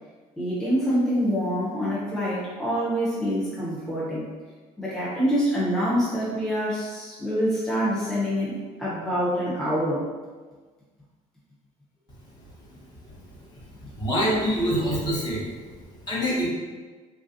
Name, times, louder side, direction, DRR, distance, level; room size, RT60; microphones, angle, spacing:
voice 1, 0.4-4.3 4.8-10.0, equal, 5° left, -10 dB, 0.6 m, -26 dB
voice 2, 13.9-15.5 16.0-16.5, equal, 30° left, -6 dB, 0.9 m, -25 dB
3.2 x 2.4 x 2.6 m, 1.4 s
cardioid pair, 135°, 14 cm